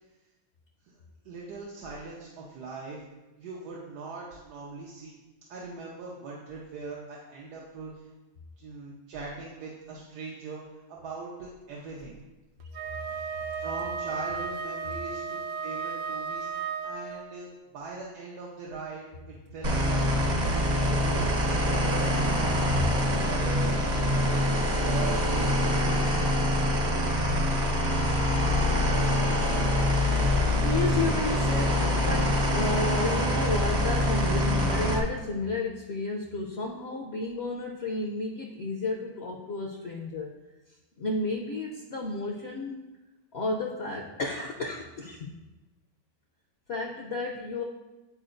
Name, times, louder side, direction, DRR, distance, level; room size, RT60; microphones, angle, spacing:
voice 1, 1.2-3.0 3.4-5.2 5.5-8.1 8.6-12.2 13.6-16.5 16.8-20.1 20.5-22.7 23.2-23.7 24.1-24.5 24.8-25.8, right 4 dB, 90° right, -4 dB, 1.4 m, -41 dB
Wind instrument woodwind instrument, 12.7-17.3, right 5 dB, 70° right, 1.0 m, -34 dB
sound 1, 19.6-35.0, left 1 dB, 45° right, 0.6 m, -25 dB
voice 2, 30.6-40.3 41.0-42.8 43.3-45.3 46.7-47.6, left 3 dB, 65° left, 1 dB, 0.6 m, -32 dB
9.8 x 4.2 x 2.5 m, 1.1 s
omnidirectional pair, 1.7 m